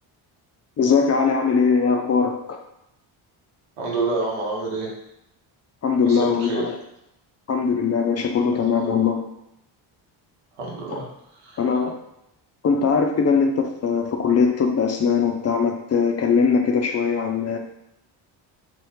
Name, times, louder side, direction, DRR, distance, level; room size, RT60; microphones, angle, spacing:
voice 1, 0.8-2.6 5.8-6.8 7.5-9.3 11.6-12.0 12.6-17.6, left 5 dB, 35° left, 3 dB, 0.4 m, -21 dB
voice 2, 3.8-4.9 6.0-6.7 8.8-8.9 10.6-11.0 11.4-11.6, right 3 dB, 90° right, -3 dB, 1.0 m, -27 dB
3.0 x 2.0 x 3.4 m, 0.82 s
supercardioid pair, 70°, 47 cm